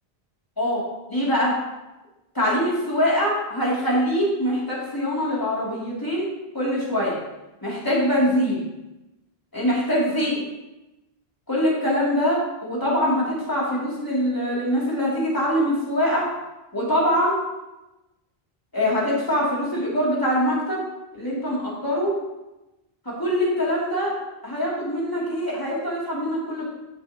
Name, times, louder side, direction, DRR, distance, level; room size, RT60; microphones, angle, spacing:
voice 1, 1.1-1.5 2.3-6.3 6.5-7.1 7.6-8.6 9.5-10.4 11.5-16.2 16.7-17.4 18.7-20.8 21.1-22.1 23.0-24.1 24.4-26.6, equal, 20° left, -7 dB, 2.7 m, -23 dB
9.3 x 7.5 x 2.9 m, 1.0 s
omnidirectional pair, 1.1 m